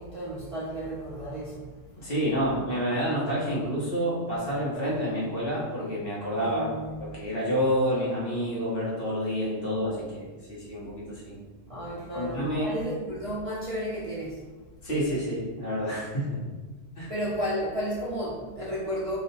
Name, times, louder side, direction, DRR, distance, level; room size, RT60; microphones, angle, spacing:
voice 1, 0.0-1.7 6.3-7.0 11.7-14.4 17.1-19.2, equal, 35° right, -8 dB, 0.6 m, -33 dB
voice 2, 2.0-6.7 7.0-11.3 12.1-12.7 14.8-16.4 17.0-17.1, equal, 55° left, -7 dB, 1.3 m, -29 dB
3.1 x 2.2 x 4.0 m, 1.3 s
omnidirectional pair, 1.2 m